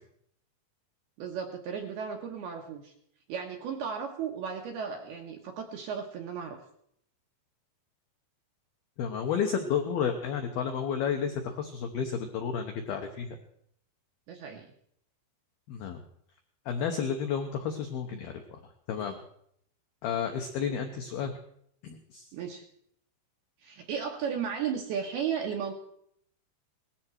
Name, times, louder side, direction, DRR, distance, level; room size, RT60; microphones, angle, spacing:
voice 1, 1.2-2.9 3.3-6.6 14.3-14.7 22.3-22.6 23.6-25.7, right 7 dB, 75° right, 2 dB, 2.5 m, -35 dB
voice 2, 9.0-13.4 15.7-16.0 16.7-18.6 18.9-19.2 20.0-21.3 21.8-22.3, left 7 dB, 85° left, 5 dB, 2.1 m, -31 dB
19.0 x 14.0 x 4.5 m, 0.69 s
omnidirectional pair, 5.8 m